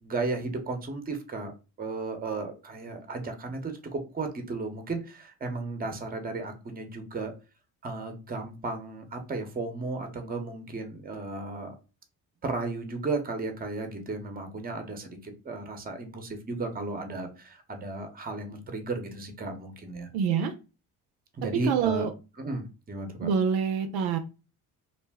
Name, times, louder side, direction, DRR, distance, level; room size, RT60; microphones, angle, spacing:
voice 1, 0.0-1.5 1.8-7.3 7.8-11.7 12.4-20.1 21.4-22.1 22.4-23.3, right 3 dB, 25° right, 5 dB, 0.8 m, -34 dB
voice 2, 20.1-20.5 21.7-22.1 23.2-24.2, right 7 dB, 80° right, 7 dB, 0.6 m, -26 dB
2.5 x 2.1 x 3.4 m, 0.31 s
supercardioid pair, 85°, 38 cm